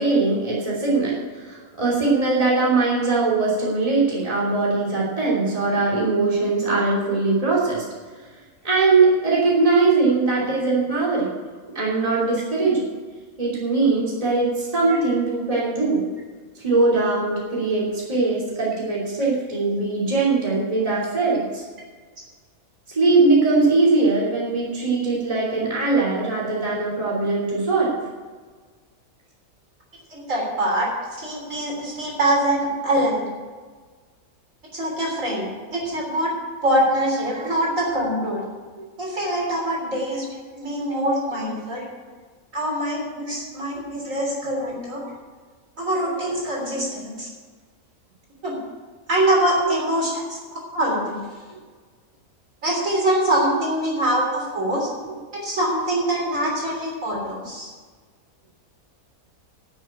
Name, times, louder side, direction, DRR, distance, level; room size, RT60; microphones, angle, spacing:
voice 1, 0.0-7.8 8.6-11.3 11.7-12.9 13.4-16.0 16.6-21.6 22.9-27.9 37.3-37.5 41.4-41.8 43.3-43.4 44.1-44.2 49.6-49.7 53.5-53.6, right 3 dB, 25° right, -6 dB, 3.0 m, -21 dB
voice 2, 30.1-30.9 31.2-33.3 34.7-36.3 36.6-38.4 39.0-40.3 40.6-41.8 42.5-45.0 45.8-47.3 48.4-48.6 49.1-50.4 50.7-51.2 52.6-54.9 55.3-57.7, right 1 dB, 60° right, -3 dB, 3.8 m, -24 dB
12.0 x 6.2 x 8.9 m, 1.5 s
omnidirectional pair, 1.5 m